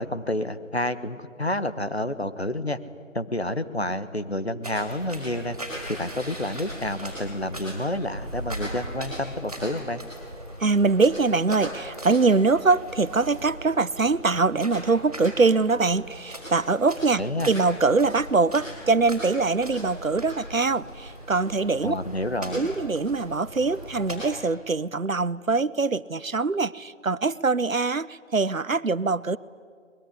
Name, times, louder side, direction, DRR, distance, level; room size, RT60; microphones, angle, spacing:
voice 1, 0.0-2.8 3.1-5.6 5.9-10.0 17.2-17.5 21.8-22.7, left 1 dB, 50° left, 11 dB, 1.5 m, -29 dB
sound 1, 4.6-24.2, right 1 dB, 5° right, 4.3 m, -39 dB
voice 2, 10.6-17.2 17.5-21.9 22.5-29.4, right 4 dB, 85° right, 19 dB, 0.9 m, -23 dB
24.0 x 21.5 x 9.8 m, 2.1 s
figure-of-eight pair, 175°, 39 cm